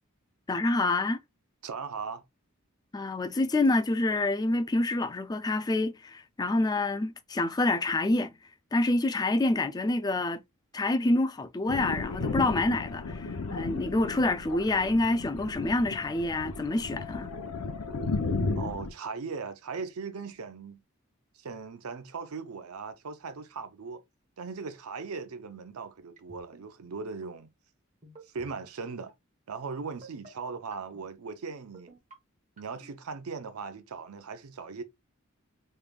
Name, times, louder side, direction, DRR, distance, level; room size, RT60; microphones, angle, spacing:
voice 1, 0.5-1.2 2.9-8.3 8.7-10.4 10.7-17.3, left 2 dB, 20° left, 0.3 m, -27 dB
voice 2, 1.6-2.2 18.5-20.8 21.3-24.0 24.4-27.5 28.3-29.1 29.5-31.9 32.6-34.8, right 5 dB, 85° right, 0.6 m, -39 dB
Thunder, 11.7-18.9, left 3 dB, 85° left, 0.6 m, -34 dB
sound 1, 26.2-26.6 27.0-27.3 28.0-28.5 28.8-29.1 29.9-30.3 30.7-31.1 31.7-32.1 32.6-32.9, right 2 dB, 35° right, 1.1 m, -51 dB
3.5 x 3.3 x 2.3 m
head